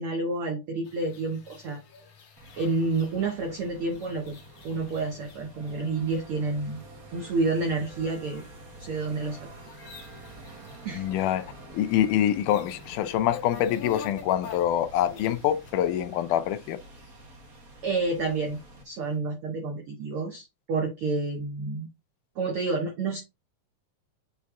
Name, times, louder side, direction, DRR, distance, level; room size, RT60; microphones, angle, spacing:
voice 1, 0.0-1.8 2.6-4.4 4.6-6.8 7.1-8.4 8.8-9.5 10.8-11.1 17.8-18.6 18.8-21.9 22.4-23.2, right 3 dB, 70° right, 1.3 m, -29 dB
sound 1, 0.8-18.7, left 5 dB, 55° left, 2.5 m, -49 dB
sound 2, 2.4-18.8, right 2 dB, 55° right, 1.0 m, -48 dB
voice 2, 10.9-16.8, left 11 dB, 80° left, 2.1 m, -25 dB
7.4 x 3.5 x 3.6 m
omnidirectional pair, 3.7 m